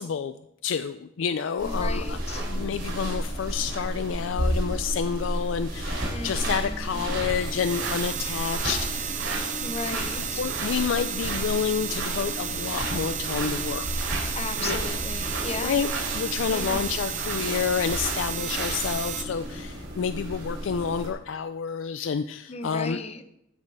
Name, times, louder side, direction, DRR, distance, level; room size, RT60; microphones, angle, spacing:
voice 1, 0.0-9.3 9.9-14.1 14.6-14.8 15.6-23.0, left 6 dB, 75° left, 11 dB, 0.4 m, -29 dB
voice 2, 1.6-2.5 6.1-7.0 9.6-10.4 14.4-15.8 16.5-16.9 22.5-23.2, left 4 dB, 35° left, 10 dB, 0.7 m, -36 dB
sound 1, 1.6-21.1, right 1 dB, 75° right, 3.3 m, -32 dB
sound 2, 7.2-19.2, right 9 dB, 40° right, 0.7 m, -33 dB
13.0 x 6.6 x 4.8 m, 0.81 s
head